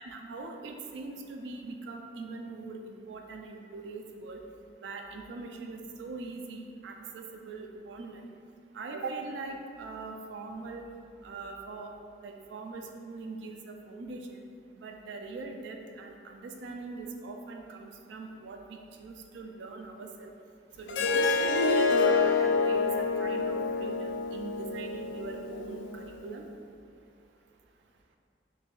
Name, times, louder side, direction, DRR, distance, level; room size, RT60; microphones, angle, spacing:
voice 1, 0.0-4.4 4.8-8.3 8.7-10.9 11.2-11.9 12.2-14.4 14.8-20.3 20.8-21.6 22.0-26.4, right 3 dB, 75° right, 3 dB, 0.3 m, -41 dB
Harp, 20.9-26.0, left 4 dB, 80° left, 0.3 m, -27 dB
7.0 x 2.5 x 2.3 m, 2.4 s
head